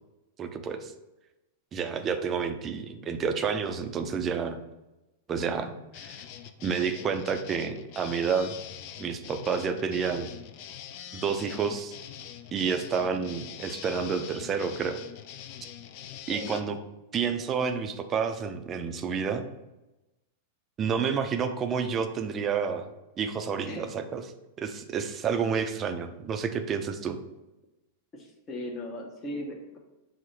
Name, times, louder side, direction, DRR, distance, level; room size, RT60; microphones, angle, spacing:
voice 1, 0.4-0.9 1.7-4.6 5.3-6.2 6.6-8.5 9.0-10.3 11.1-11.9 12.5-15.0 16.3-16.8 17.1-19.4 20.8-22.9 23.2-24.2 24.6-27.2, right 6 dB, 30° right, 8 dB, 0.4 m, -29 dB
sound 1, 5.9-16.6, left 10 dB, 50° left, 0.3 m, -44 dB
voice 2, 16.3-16.6 23.6-23.8 28.1-29.8, left 1 dB, 25° left, 0 dB, 0.7 m, -38 dB
6.0 x 2.1 x 2.8 m, 1.0 s
figure-of-eight pair, 95°, 0 cm